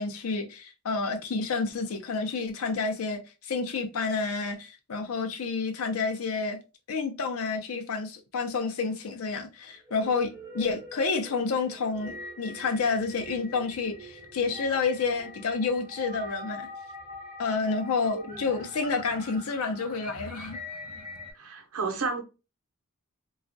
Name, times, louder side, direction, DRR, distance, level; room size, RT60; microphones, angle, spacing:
voice 1, 0.0-6.6 6.9-16.7 17.4-20.6, left 4 dB, 80° left, 0.5 m, -29 dB
sound 1, 9.8-21.3, left 1 dB, 15° right, 1.3 m, -43 dB
voice 2, 18.0-18.4 21.3-22.2, right 4 dB, 80° right, 0.7 m, -32 dB
2.3 x 2.1 x 2.5 m
head